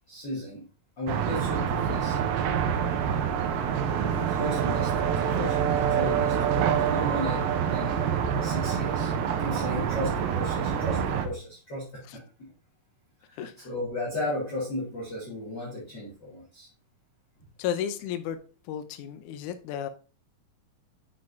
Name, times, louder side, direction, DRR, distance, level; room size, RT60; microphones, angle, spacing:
voice 1, 0.1-0.7 1.0-2.5 4.1-8.2 8.4-9.1 9.4-12.5 13.3-16.7, left 1 dB, 35° left, 2.3 m, -35 dB
sound 1, 1.1-11.3, right 8 dB, 80° right, 2.5 m, -26 dB
voice 2, 13.4-13.7 17.6-18.4 18.7-19.9, left 9 dB, 85° left, 1.8 m, -33 dB
9.6 x 5.8 x 2.7 m
omnidirectional pair, 4.2 m